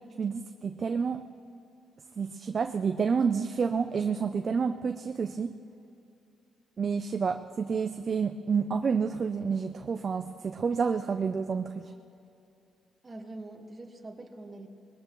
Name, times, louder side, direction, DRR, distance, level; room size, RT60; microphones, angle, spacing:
voice 1, 0.2-1.3 2.2-5.6 6.8-11.9, right 5 dB, 45° right, 8 dB, 0.4 m, -29 dB
voice 2, 13.0-14.7, right 2 dB, 25° right, 3 dB, 1.5 m, -44 dB
20.5 x 17.5 x 3.1 m, 2.6 s
cardioid pair, 90°, 0 cm